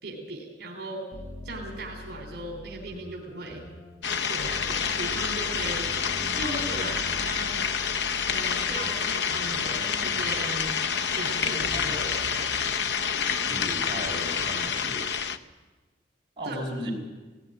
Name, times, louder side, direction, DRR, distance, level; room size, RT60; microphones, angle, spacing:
voice 1, 0.0-1.1 1.4-3.6 4.3-5.9 6.4-7.6 8.3-10.7 11.1-12.4 16.4-16.6, right 2 dB, 60° right, 0 dB, 3.3 m, -37 dB
sound 1, 1.1-12.7, left 1 dB, 20° left, 4.7 m, -43 dB
sound 2, 4.0-15.4, left 6 dB, 70° left, 0.8 m, -28 dB
voice 2, 13.5-15.0 16.4-16.9, equal, 25° right, -3 dB, 5.4 m, -35 dB
17.5 x 16.5 x 10.0 m, 1.3 s
head